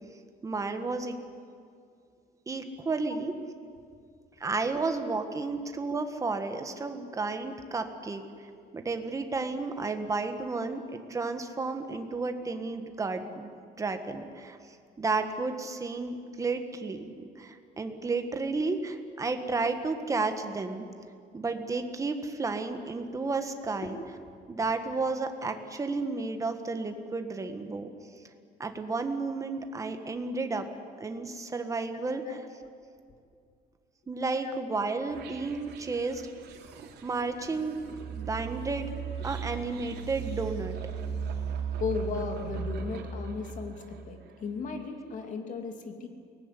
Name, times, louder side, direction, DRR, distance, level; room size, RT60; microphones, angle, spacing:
voice 1, 0.4-1.2 2.5-3.3 4.4-8.2 8.7-13.5 13.8-14.6 15.0-20.8 21.3-23.9 24.5-27.9 28.6-30.7 31.0-32.2 34.1-36.2 37.0-38.9 39.2-40.8, right 3 dB, 20° right, 7 dB, 1.6 m, -32 dB
sound 1, 35.1-44.3, right 6 dB, 80° right, 3.2 m, -37 dB
voice 2, 41.8-46.1, left 5 dB, 50° left, 5 dB, 2.5 m, -36 dB
23.0 x 19.5 x 9.9 m, 2.3 s
cardioid pair, 175°, 17 cm